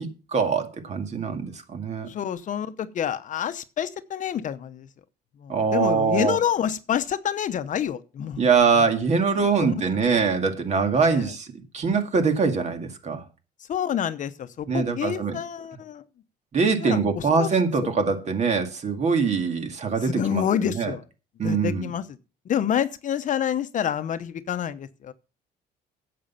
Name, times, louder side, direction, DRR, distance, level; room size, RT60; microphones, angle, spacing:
voice 1, 0.0-2.1 5.5-6.4 8.4-11.5 11.7-13.2 14.7-15.4 16.5-20.9 21.4-21.9, right 5 dB, 40° right, 2.1 m, -23 dB
voice 2, 2.1-4.9 5.4-8.4 8.7-8.8 9.4-9.7 11.1-11.3 13.7-16.0 16.8-17.5 17.8-17.9 20.0-21.0 21.4-22.0 22.4-25.1, left 9 dB, 50° left, 0.9 m, -28 dB
10.5 x 7.9 x 5.7 m
cardioid pair, 110°, 17 cm